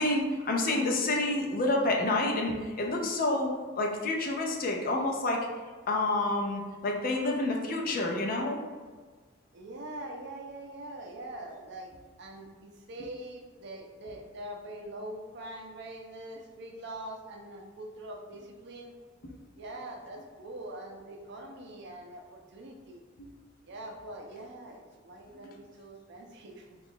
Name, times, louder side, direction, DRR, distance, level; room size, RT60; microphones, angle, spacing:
voice 1, 0.0-3.5 3.8-5.5 5.9-8.6 23.2-23.3, left 2 dB, 50° left, 1 dB, 0.5 m, -28 dB
voice 2, 9.5-11.9 12.2-18.9 19.6-23.0 23.6-26.8, right 1 dB, 60° right, 2 dB, 0.5 m, -43 dB
3.0 x 2.3 x 3.8 m, 1.5 s
head